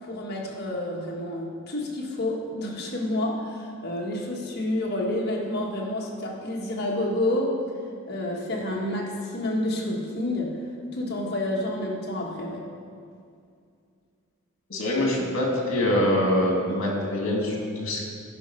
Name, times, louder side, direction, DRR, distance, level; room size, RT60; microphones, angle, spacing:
voice 1, 0.0-7.6 8.1-10.6 10.9-12.6, left 1 dB, 50° left, -2 dB, 1.5 m, -29 dB
voice 2, 14.7-18.1, left 1 dB, 65° left, -1 dB, 2.1 m, -24 dB
11.0 x 5.3 x 5.4 m, 2.3 s
head